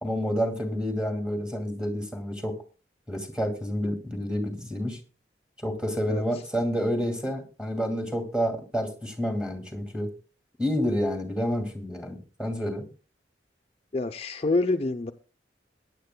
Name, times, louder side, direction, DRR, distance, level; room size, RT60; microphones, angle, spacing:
voice 1, 0.0-2.5 3.1-5.0 5.6-10.1 10.6-12.9, equal, 5° right, 5 dB, 2.4 m, -29 dB
voice 2, 13.9-15.1, left 2 dB, 35° left, 5 dB, 0.6 m, -26 dB
22.0 x 10.5 x 2.2 m, 0.34 s
head